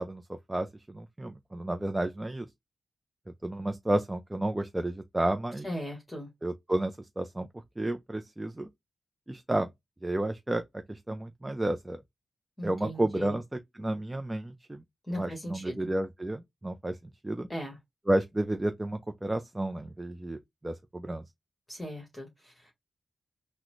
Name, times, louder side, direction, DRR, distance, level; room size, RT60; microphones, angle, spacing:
voice 1, 0.0-2.5 3.4-5.7 6.4-7.5 7.8-8.7 9.3-9.7 10.0-12.0 12.6-14.8 15.2-17.0 17.2-17.5 18.1-21.2, right 1 dB, 15° right, 0.4 m, -31 dB
voice 2, 5.6-6.3 12.6-13.4 15.0-15.9 17.5-17.8 21.7-22.7, equal, 20° left, 1.3 m, -38 dB
3.7 x 2.0 x 3.0 m
cardioid pair, 90°, 0 cm